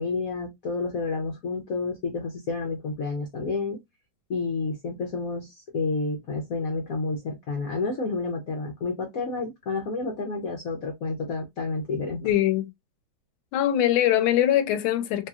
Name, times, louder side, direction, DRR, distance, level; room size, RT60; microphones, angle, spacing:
voice 1, 0.0-3.8 4.3-12.4, left 3 dB, 60° left, 0.9 m, -30 dB
voice 2, 12.2-12.7 13.5-15.3, left 12 dB, 85° left, 1.4 m, -22 dB
3.2 x 2.8 x 2.3 m
omnidirectional pair, 2.2 m